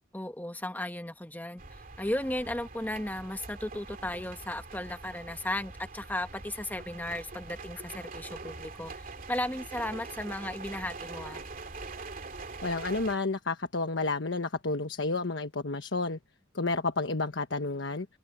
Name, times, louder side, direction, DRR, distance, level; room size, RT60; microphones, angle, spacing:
voice 1, 0.1-11.4, left 1 dB, 10° left, 1.1 m, -35 dB
sound 1, 1.6-13.2, right 3 dB, 50° right, 2.6 m, -44 dB
voice 2, 12.6-16.2 16.5-18.1, left 3 dB, 70° left, 1.2 m, -30 dB
head